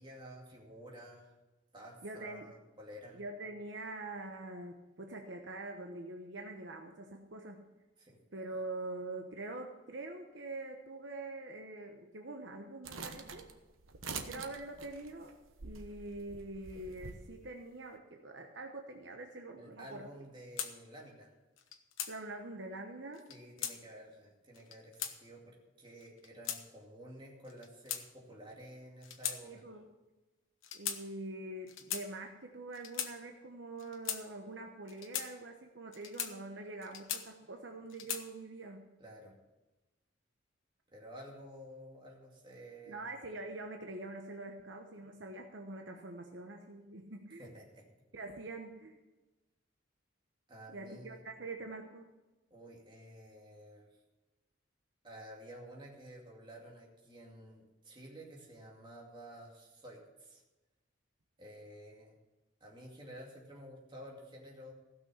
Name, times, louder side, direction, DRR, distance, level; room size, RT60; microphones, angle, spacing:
voice 1, 0.0-1.3 1.7-3.2 8.0-8.2 19.6-21.3 23.3-29.6 39.0-39.4 40.9-43.1 47.4-47.9 50.5-51.2 52.5-53.9 55.0-60.4 61.4-62.2 62.6-64.7, equal, 25° right, -1 dB, 2.4 m, -52 dB
voice 2, 2.0-2.5 3.1-7.7 8.3-13.5 14.3-15.3 15.6-20.1 22.1-23.2 29.4-29.8 30.7-38.9 42.9-47.5 48.1-49.0 50.7-52.1, right 2 dB, 60° right, 3 dB, 1.0 m, -45 dB
sound 1, 12.8-17.2, right 5 dB, 85° right, 1.1 m, -46 dB
sound 2, 20.6-20.7 21.6-22.1 23.1-23.8 24.5-25.1 26.0-26.6 27.5-28.4 29.0-29.4 29.7-29.9 30.6-31.0 31.7-32.0 32.7-33.1 33.8-34.2 34.9-35.3 35.9-36.3 36.8-37.5 37.9-38.3, left 9 dB, 80° left, 1.1 m, -39 dB
16.0 x 6.2 x 7.1 m, 1.1 s
head